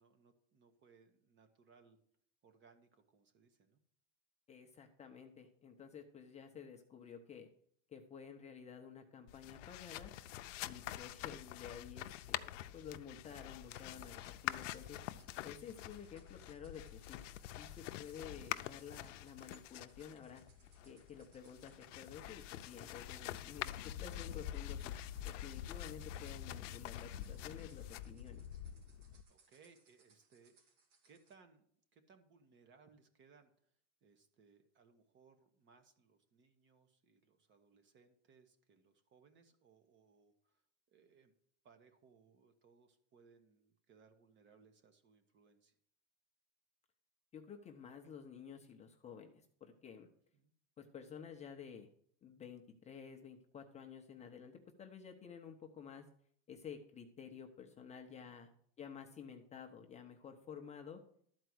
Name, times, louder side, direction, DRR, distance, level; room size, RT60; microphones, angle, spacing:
voice 1, 0.0-2.0 2.4-3.8 14.3-14.8 15.2-15.3 20.6-20.9 29.3-30.7 31.0-33.5 34.0-40.6 40.9-41.3 41.6-45.8 50.3-50.5, right 5 dB, 30° right, 9 dB, 1.3 m, -67 dB
voice 2, 4.5-7.5 7.9-10.1 10.6-15.0 15.4-17.2 17.6-20.4 20.8-24.9 25.2-28.4 47.3-50.1 50.8-51.9 52.2-56.1 56.5-58.5 58.8-61.0, left 7 dB, 20° left, 4 dB, 0.8 m, -52 dB
sound 1, 9.3-29.2, left 13 dB, 90° left, 0.7 m, -46 dB
sound 2, 13.7-31.3, right 4 dB, 90° right, 3.0 m, -72 dB
12.5 x 4.6 x 7.8 m, 0.62 s
supercardioid pair, 150°, 36 cm